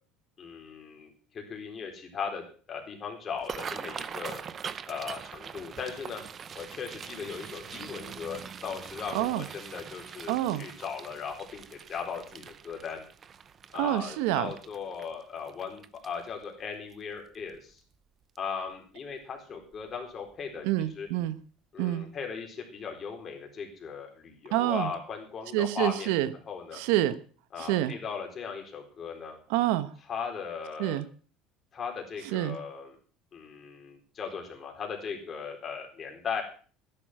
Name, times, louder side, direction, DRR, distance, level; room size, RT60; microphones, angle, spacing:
voice 1, 0.4-4.4 4.9-6.2 6.5-13.0 13.7-17.8 18.4-20.6 21.0-21.1 21.7-26.2 26.5-26.8 27.5-29.4 30.1-31.0 31.7-33.0 33.3-36.4, left 6 dB, 30° left, 2 dB, 4.2 m, -38 dB
sound 1, 3.3-16.4 16.9-17.2 17.5-17.9 18.4-18.5 19.7-19.9 20.3-20.4 20.9-21.0, right 7 dB, 30° right, 0.7 m, -43 dB
voice 2, 9.1-9.5 10.3-10.6 13.7-14.5 20.6-21.4 21.8-22.1 24.5-24.9 25.5-26.3 26.7-27.1 27.6-27.9 29.5-29.9 30.8-31.0 32.3-32.6, right 14 dB, 80° right, 14 dB, 1.0 m, -27 dB
13.5 x 11.0 x 6.1 m, 0.42 s
cardioid pair, 130°, 0 cm